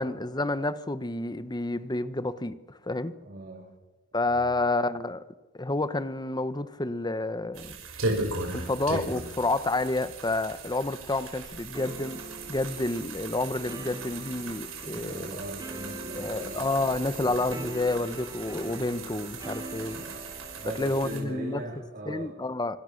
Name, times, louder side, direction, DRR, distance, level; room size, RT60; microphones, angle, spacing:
voice 1, 0.0-3.2 4.1-5.2 5.5-7.8 8.5-12.2 12.5-15.4 16.2-20.0 20.8-21.6 22.1-22.8, left 2 dB, 20° left, 13 dB, 1.1 m, -29 dB
voice 2, 3.2-3.7 4.3-4.5 14.8-16.7 17.2-17.5 20.0-20.3 20.6-22.4, right 1 dB, 50° right, -1 dB, 3.6 m, -40 dB
sound 1, 7.5-21.2, right 3 dB, 80° right, 6.0 m, -38 dB
sound 2, 11.7-21.8, equal, 20° right, 3.0 m, -43 dB
26.0 x 24.0 x 6.6 m, 1.1 s
head